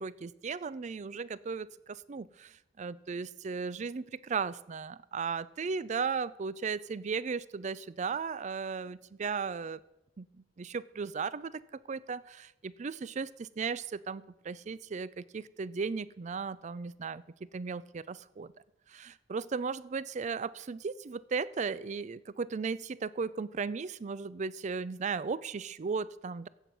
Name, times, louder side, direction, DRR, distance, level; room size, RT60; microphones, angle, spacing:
voice 1, 0.0-9.8 10.2-10.3 10.6-11.6 11.9-17.2 17.5-18.5 18.9-26.5, right 5 dB, 40° right, 18 dB, 0.4 m, -36 dB
15.0 x 7.6 x 5.5 m, 0.90 s
head